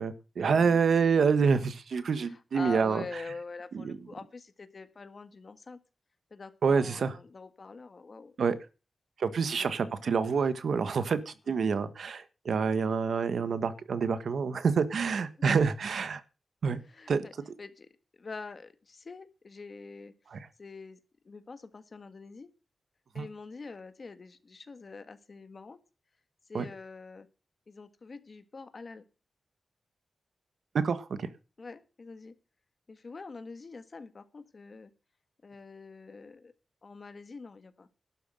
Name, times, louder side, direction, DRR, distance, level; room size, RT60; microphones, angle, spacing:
voice 1, 0.0-3.0 3.7-4.0 6.6-7.2 8.4-8.6 9.2-16.2 16.6-16.8 17.1-17.2 20.3-20.4 23.2-23.3 26.5-26.6 30.7-31.3, right 5 dB, 75° right, 13 dB, 1.4 m, -27 dB
voice 2, 2.2-5.8 6.3-8.6 9.5-10.1 11.5-12.1 15.4-15.7 16.8-17.3 17.6-17.9 18.2-20.1 20.6-21.0 21.2-22.5 23.1-25.8 26.5-27.3 27.7-29.0 31.6-32.3 32.9-34.9 35.4-36.5 36.8-37.9, left 4 dB, 45° left, 10 dB, 1.7 m, -45 dB
12.0 x 8.0 x 7.9 m, 0.32 s
wide cardioid pair, 130°, 0 cm